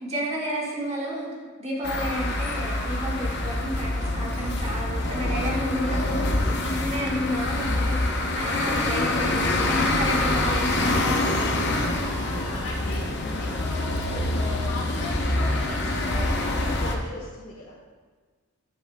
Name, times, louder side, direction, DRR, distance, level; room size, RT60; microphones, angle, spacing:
voice 1, 0.0-1.3 1.6-12.0, equal, 30° right, -5 dB, 1.7 m, -31 dB
sound 1, 1.8-17.0, left 2 dB, 50° left, 0.7 m, -26 dB
voice 2, 12.2-17.7, left 1 dB, 80° left, -5 dB, 1.5 m, -38 dB
10.5 x 8.0 x 2.2 m, 1.4 s
head